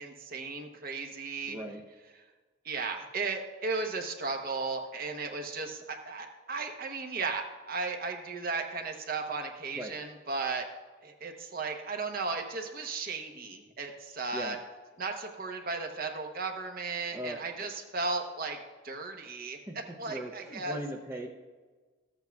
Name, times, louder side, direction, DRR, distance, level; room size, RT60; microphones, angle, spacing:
voice 1, 0.0-1.6 2.6-10.7 11.0-14.6 15.0-18.6 18.8-19.6 20.0-20.8, right 4 dB, 50° right, 4 dB, 1.0 m, -35 dB
voice 2, 1.4-1.8 9.8-9.9 14.3-14.6 17.1-17.4 19.1-19.8 20.1-21.3, right 1 dB, 15° right, 1 dB, 0.5 m, -39 dB
14.0 x 8.1 x 2.3 m, 1.4 s
head